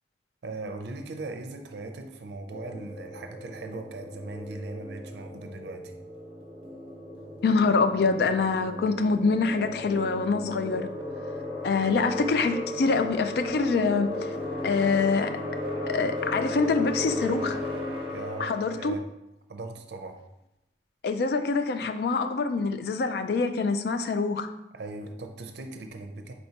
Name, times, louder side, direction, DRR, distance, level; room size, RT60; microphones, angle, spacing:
voice 1, 0.4-5.9 18.0-19.0 19.5-20.2 24.7-26.3, right 2 dB, 70° right, 6 dB, 0.5 m, -39 dB
sound 1, 2.5-19.0, left 1 dB, 30° right, 0.8 m, -36 dB
voice 2, 7.4-10.9 11.6-14.4 14.6-15.3 15.9-17.6 18.4-18.9 21.0-24.5, left 4 dB, 60° left, 9 dB, 0.3 m, -25 dB
4.4 x 4.2 x 2.8 m, 0.89 s
head